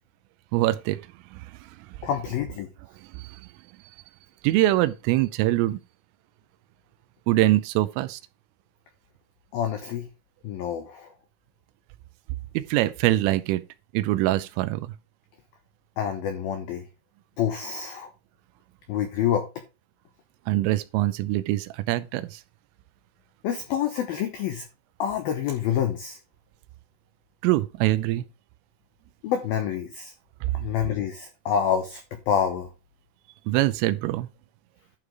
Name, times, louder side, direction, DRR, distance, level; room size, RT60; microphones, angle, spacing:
voice 1, 0.5-1.0 1.3-1.4 3.1-3.2 4.4-5.8 7.3-8.2 12.5-13.6 13.9-14.9 20.5-22.4 27.4-28.2 33.5-34.3, right 16 dB, 80° right, 3.2 m, -23 dB
voice 2, 2.0-2.7 9.5-10.1 10.4-11.1 16.0-16.8 17.4-18.1 18.9-19.5 23.4-24.6 25.0-26.2 29.2-30.1 30.5-32.0 32.3-32.7, left 9 dB, 90° left, 2.0 m, -27 dB
11.5 x 5.0 x 4.7 m
omnidirectional pair, 5.9 m